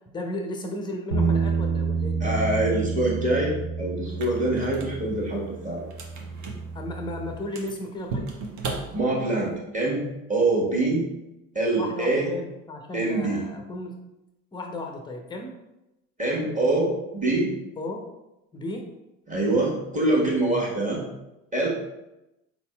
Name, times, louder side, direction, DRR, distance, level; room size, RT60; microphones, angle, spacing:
voice 1, 0.1-2.4 6.7-8.3 11.8-14.1 14.5-15.6 17.8-18.1 18.5-18.9, left 1 dB, 10° left, 3 dB, 0.6 m, -34 dB
sound 1, 1.1-7.4, right 5 dB, 85° right, 0.9 m, -29 dB
voice 2, 2.2-5.9 8.9-10.0 10.3-11.1 11.5-12.3 12.9-13.4 16.2-17.5 19.3-21.0 21.5-21.7, right 2 dB, 20° right, -4 dB, 1.4 m, -24 dB
sound 2, 4.0-9.6, right 3 dB, 40° right, 0.8 m, -38 dB
4.2 x 4.1 x 2.2 m, 0.93 s
figure-of-eight pair, 65°, 42 cm